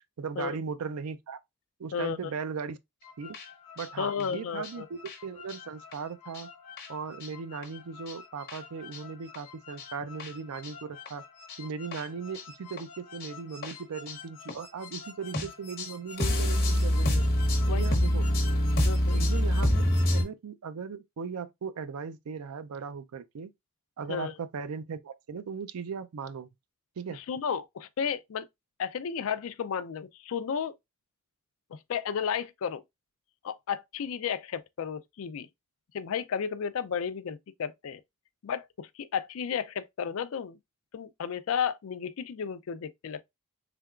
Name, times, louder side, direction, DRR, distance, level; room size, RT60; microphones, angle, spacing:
voice 1, 0.2-1.4 1.8-2.8 3.2-3.4 3.8-6.5 6.9-11.2 11.6-17.3 17.7-18.3 19.1-19.8 20.1-23.5 24.0-26.5 27.0-27.2, right 5 dB, 85° right, 0.4 m, -38 dB
voice 2, 1.9-2.3 4.0-4.9 17.7-17.8 18.8-19.2 24.1-24.3 27.1-28.5 28.8-30.7 31.7-32.8 33.4-35.5 35.9-38.0 38.4-40.6 40.9-43.2, left 7 dB, 65° left, 0.4 m, -33 dB
sound 1, 3.0-20.2, left 1 dB, 45° left, 1.1 m, -28 dB
3.6 x 3.4 x 2.3 m
head